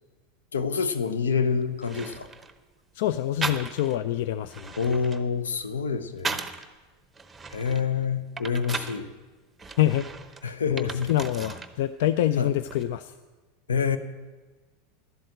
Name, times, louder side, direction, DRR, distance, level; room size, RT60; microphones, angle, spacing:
voice 1, 0.5-2.3 4.8-6.4 7.5-9.1 10.4-11.1 12.4-12.5 13.7-14.0, left 6 dB, 85° left, 11 dB, 0.7 m, -27 dB
sound 1, 1.4-1.5 1.8-2.6 3.4-4.0 4.4-6.7 7.1-9.0 9.6-11.7 12.0-12.8, right 4 dB, 15° right, 0.9 m, -36 dB
voice 2, 3.0-4.7 9.8-10.1 10.7-13.1, left 12 dB, 65° left, 13 dB, 0.4 m, -26 dB
12.0 x 7.8 x 7.8 m, 1.3 s
hypercardioid pair, 90°, 0 cm